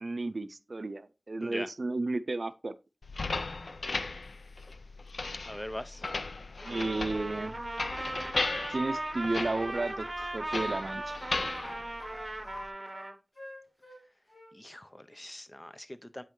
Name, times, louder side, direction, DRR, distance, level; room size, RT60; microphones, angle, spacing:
voice 1, 0.0-2.7 6.7-7.5 8.7-11.2, right 2 dB, 65° right, 0.4 m, -33 dB
sound 1, 3.0-12.7, left 3 dB, 90° left, 0.5 m, -37 dB
voice 2, 5.5-6.0 14.5-16.2, left 1 dB, 25° left, 0.6 m, -41 dB
Trumpet, 6.6-13.2, right 1 dB, 35° right, 0.9 m, -38 dB
Wind instrument woodwind instrument, 7.6-10.8 11.1-12.7 12.9-14.0 14.3-14.6, left 1 dB, 40° left, 2.1 m, -47 dB
8.3 x 5.5 x 3.1 m
wide cardioid pair, 60°, 0 cm